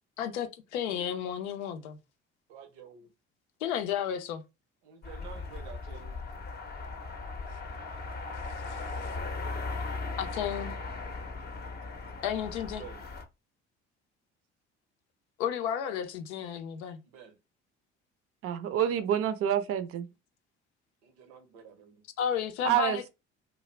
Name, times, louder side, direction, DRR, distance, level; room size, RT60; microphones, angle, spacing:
voice 1, 0.2-2.0 3.6-4.4 8.7-9.1 10.2-10.7 12.2-12.8 15.4-17.0 22.2-23.1, left 9 dB, 75° left, 0.5 m, -33 dB
voice 2, 2.5-3.1 4.8-6.2 10.7-10.8 12.8-13.0 17.1-17.4 21.0-22.0, right 7 dB, 75° right, 0.7 m, -49 dB
sound 1, 5.0-13.3, left 3 dB, 30° left, 0.6 m, -38 dB
voice 3, 18.4-20.1 22.6-23.1, right 10 dB, 40° right, 0.5 m, -28 dB
2.3 x 2.1 x 3.0 m
hypercardioid pair, 55°, 35 cm